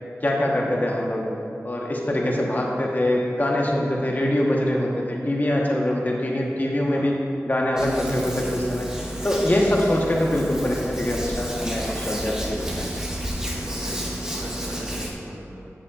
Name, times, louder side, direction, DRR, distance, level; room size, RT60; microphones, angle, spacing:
voice 1, 0.2-1.2 1.6-7.1 7.4-12.9, left 1 dB, 35° left, -2 dB, 1.1 m, -24 dB
Hands, 7.8-15.1, equal, 10° right, 1.2 m, -31 dB
voice 2, 13.8-15.7, right 1 dB, 55° right, -4 dB, 1.4 m, -39 dB
10.0 x 8.0 x 2.4 m, 2.5 s
wide cardioid pair, 60°, 5 cm